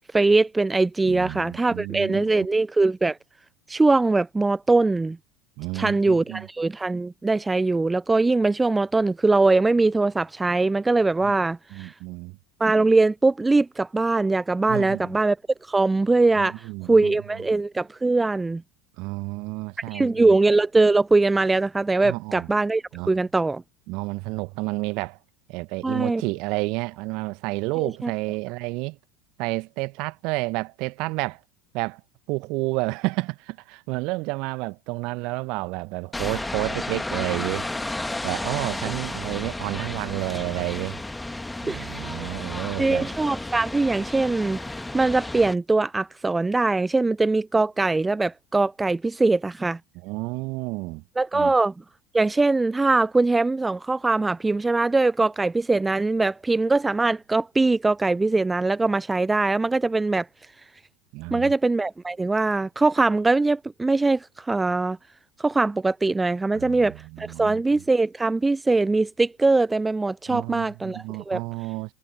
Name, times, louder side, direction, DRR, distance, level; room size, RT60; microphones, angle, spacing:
voice 1, 0.1-3.2 3.7-5.2 5.7-11.9 12.6-15.4 15.6-18.6 19.9-23.6 25.8-26.2 27.8-28.1 41.7-42.3 42.8-49.8 51.2-51.7 52.1-60.5 61.3-65.0 65.4-71.4, right 3 dB, 10° right, 0.3 m, -22 dB
voice 2, 1.0-2.3 5.6-6.5 11.2-11.3 11.7-12.4 14.7-15.2 16.4-17.1 19.0-20.3 22.0-22.5 22.9-23.1 23.9-25.2 25.5-29.0 29.4-31.4 31.7-32.0 32.3-37.7 38.2-41.0 41.6-43.1 50.0-51.0 51.3-51.5 61.1-61.5 66.5-67.6 70.3-71.9, right 25 dB, 55° right, 1.2 m, -30 dB
sound 1, 36.1-45.5, left 2 dB, 10° left, 1.6 m, -32 dB
figure-of-eight pair, 75°, 0 cm